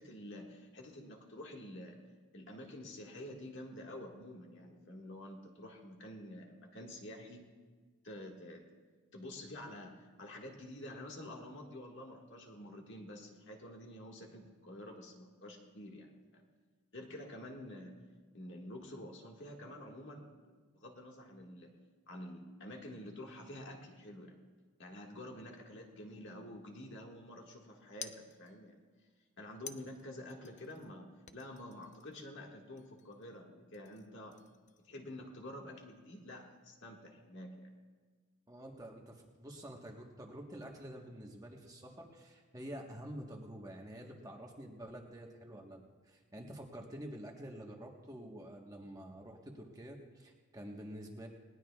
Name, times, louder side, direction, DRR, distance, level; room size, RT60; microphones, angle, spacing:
voice 1, 0.0-2.0 2.3-7.5 8.0-8.6 9.1-16.4 16.9-17.9 18.3-20.3 20.7-21.7 22.1-24.3 24.8-28.8 29.4-34.4 34.8-37.7, left 1 dB, 55° left, 0 dB, 1.8 m, -49 dB
sound 1, 26.1-26.9 28.0-28.8 29.6-30.9 31.3-32.4 32.8-33.4 33.7-34.9, left 8 dB, 35° left, 0.5 m, -53 dB
voice 2, 38.5-51.3, right 1 dB, 15° right, 1 dB, 1.2 m, -48 dB
20.0 x 19.0 x 2.4 m, 1.5 s
head